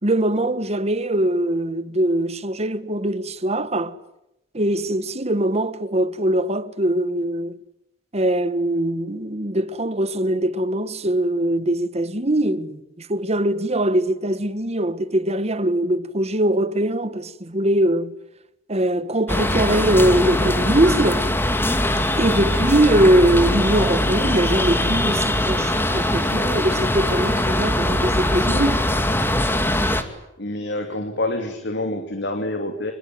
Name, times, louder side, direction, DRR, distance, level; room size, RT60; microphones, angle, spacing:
voice 1, 0.0-3.9 4.5-7.5 8.1-18.1 18.7-21.3 22.2-28.9, right 1 dB, 35° right, 1.5 m, -21 dB
sound 1, 19.3-30.0, left 1 dB, 10° left, 2.5 m, -21 dB
voice 2, 30.4-32.9, left 1 dB, 65° left, 2.9 m, -27 dB
26.5 x 23.5 x 9.3 m
head